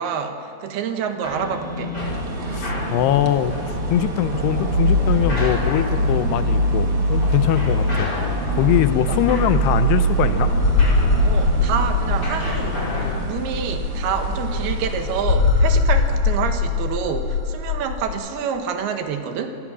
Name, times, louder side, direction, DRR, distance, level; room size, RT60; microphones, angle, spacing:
voice 1, 0.0-2.0 9.1-9.2 11.2-12.8 13.2-19.5, right 7 dB, 75° right, 6 dB, 3.1 m, -27 dB
sound 1, 1.2-13.2, left 1 dB, 25° left, 5.3 m, -31 dB
sound 2, 2.0-15.2, right 1 dB, 60° right, 1.5 m, -24 dB
voice 2, 2.5-3.6 3.9-8.1 8.5-10.5, left 11 dB, 80° left, 11 dB, 2.9 m, -22 dB
sound 3, 9.0-18.1, left 4 dB, 50° left, 2.6 m, -22 dB
27.5 x 17.5 x 6.3 m, 2.8 s
omnidirectional pair, 4.8 m